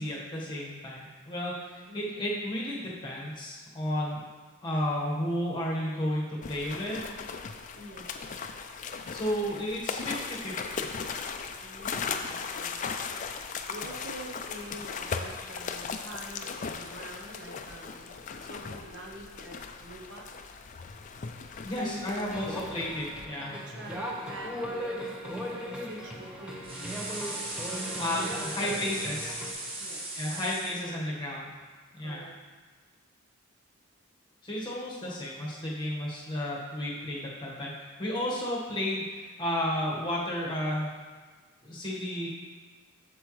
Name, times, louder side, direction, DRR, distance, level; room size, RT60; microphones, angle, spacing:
voice 1, 0.0-4.2 4.6-7.1 9.1-10.8 21.6-23.5 28.0-29.3 30.2-31.5 31.9-32.2 34.4-40.9 41.6-42.3, left 1 dB, 20° left, -4 dB, 1.4 m, -32 dB
sound 1, 6.4-23.3, left 5 dB, 35° left, 0.4 m, -38 dB
voice 2, 7.7-8.1 11.6-12.8 13.3-20.2 21.5-22.8 23.5-25.1 25.5-27.0 27.6-28.8 29.1-29.2 29.8-31.1 32.0-32.4, right 1 dB, 55° right, 0 dB, 0.9 m, -46 dB
sound 2, 22.3-29.5, equal, 5° right, 0.7 m, -38 dB
sound 3, 26.6-30.8, right 2 dB, 25° right, 1.0 m, -38 dB
7.9 x 6.8 x 3.2 m, 1.5 s
head